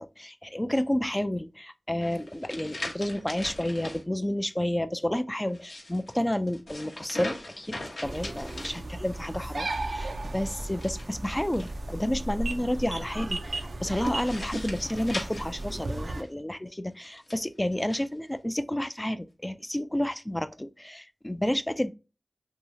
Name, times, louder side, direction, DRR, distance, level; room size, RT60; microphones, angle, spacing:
voice 1, 0.0-7.7 8.0-21.9, left 1 dB, 15° left, 0.3 m, -30 dB
sound 1, 2.0-4.0 5.4-9.3 10.7-12.0 13.9-16.3 17.0-18.1, left 1 dB, 90° left, 0.8 m, -41 dB
sound 2, 8.0-16.2, right 2 dB, 85° right, 0.3 m, -35 dB
2.8 x 2.3 x 2.7 m
wide cardioid pair, 55°, 0 cm